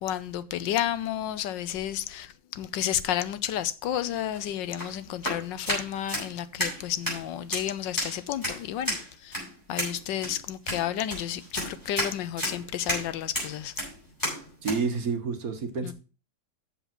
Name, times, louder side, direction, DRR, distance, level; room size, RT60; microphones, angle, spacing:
voice 1, 0.0-9.4 9.7-13.7 15.8-15.9, left 11 dB, 80° left, 1.3 m, -31 dB
sound 1, 4.2-14.8, equal, 10° left, 5.7 m, -33 dB
voice 2, 14.6-15.9, right 5 dB, 55° right, 1.6 m, -29 dB
7.4 x 7.0 x 5.9 m
omnidirectional pair, 2.0 m